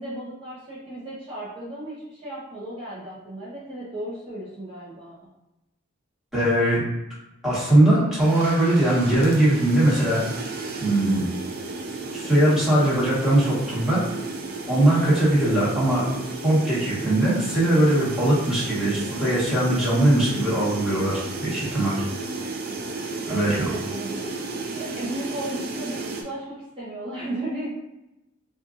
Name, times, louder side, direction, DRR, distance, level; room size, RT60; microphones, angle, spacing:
voice 1, 0.0-5.2 23.2-27.7, right 1 dB, 25° right, -9 dB, 0.8 m, -35 dB
voice 2, 6.3-6.8 7.4-10.2 10.8-11.2 12.1-14.0 14.7-16.0 16.4-21.9 23.2-23.7, right 1 dB, ahead, -9 dB, 1.4 m, -20 dB
sound 1, 8.2-26.2, right 3 dB, 50° right, 0.5 m, -33 dB
4.4 x 2.4 x 2.5 m, 0.92 s
head